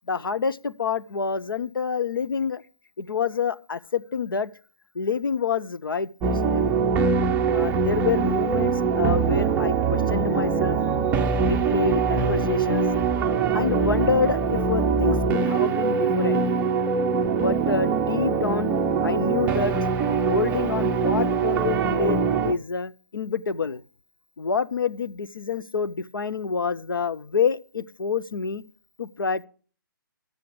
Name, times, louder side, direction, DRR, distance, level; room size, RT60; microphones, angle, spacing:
voice 1, 0.1-2.6 3.0-4.5 4.9-6.7 7.5-11.0 11.4-12.9 13.5-16.4 17.3-18.7 19.0-23.8 24.4-28.6 29.0-29.5, left 5 dB, 75° left, 0.7 m, -27 dB
sound 1, 6.2-22.5, right 5 dB, 15° right, 0.6 m, -23 dB
8.4 x 6.4 x 7.8 m
figure-of-eight pair, 140°, 12 cm